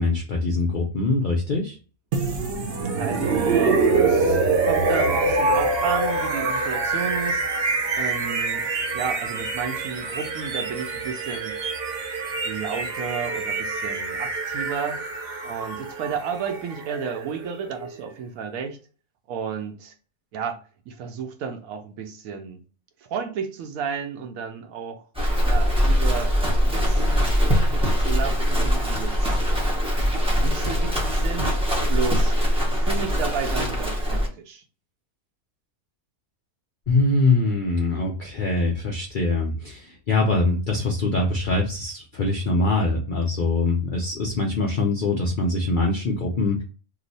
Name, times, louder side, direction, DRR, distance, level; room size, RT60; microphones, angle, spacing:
voice 1, 0.0-1.8 36.9-46.6, left 2 dB, 65° left, 0.5 m, -23 dB
sound 1, 2.1-18.0, right 3 dB, 50° right, 0.7 m, -25 dB
voice 2, 3.0-7.4 7.9-8.6 8.9-11.6 12.4-15.0 15.4-18.8 19.3-19.9 20.3-20.6 20.9-22.6 23.1-25.0 25.4-26.3 26.6-29.3 30.4-31.5 31.9-32.4 32.7-34.6, right 6 dB, 75° right, 1.0 m, -32 dB
Livestock farm animals working animals, 25.1-34.3, equal, 5° right, 0.4 m, -22 dB
2.9 x 2.0 x 3.9 m
omnidirectional pair, 1.6 m